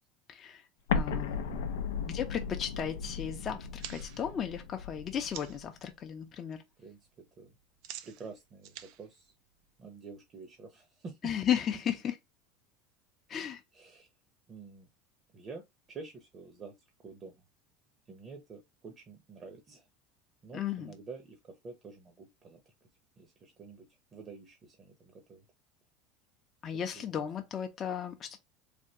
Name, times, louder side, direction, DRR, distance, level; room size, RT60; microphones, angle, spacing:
voice 1, 0.3-0.6 0.9-1.4 2.0-6.6 11.2-12.1 13.3-13.6 20.5-20.9 26.6-28.4, left 9 dB, 35° left, 0.6 m, -35 dB
Explosion, 0.9-5.7, left 5 dB, 90° left, 0.4 m, -36 dB
sound 1, 3.8-5.7 6.1-6.6 6.8-10.1, right 11 dB, 65° right, 0.4 m, -49 dB
voice 2, 8.0-9.3 9.8-11.3 13.7-14.1 14.5-14.9 15.3-16.7 17.0-17.4 18.1-19.9 20.4-22.6 23.2-23.9 24.1-25.4 26.9-27.3, right 4 dB, 35° right, 0.8 m, -48 dB
3.4 x 2.3 x 2.8 m
supercardioid pair, 110°, 0 cm